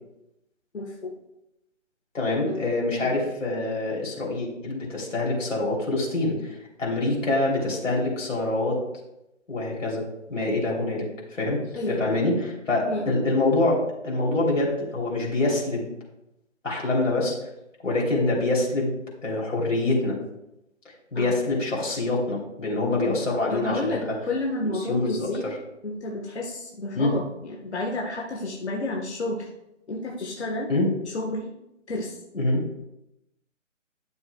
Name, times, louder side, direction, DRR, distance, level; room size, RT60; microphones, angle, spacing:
voice 1, 0.7-1.1 2.5-2.6 3.0-3.2 11.7-12.2 12.9-13.1 21.1-21.3 23.5-25.5 25.8-29.5 29.9-30.7 31.1-31.5 31.9-32.2, left 2 dB, 60° left, -1 dB, 1.4 m, -31 dB
voice 2, 2.1-8.8 9.5-10.0 10.3-11.6 11.9-15.9 16.6-17.4 17.8-18.9 19.2-20.2 21.1-24.1 24.6-25.6 26.9-27.1 30.7-30.9 32.3-32.6, left 2 dB, 80° left, -3 dB, 3.2 m, -25 dB
11.0 x 7.2 x 2.3 m, 0.88 s
hypercardioid pair, 170°, 38 cm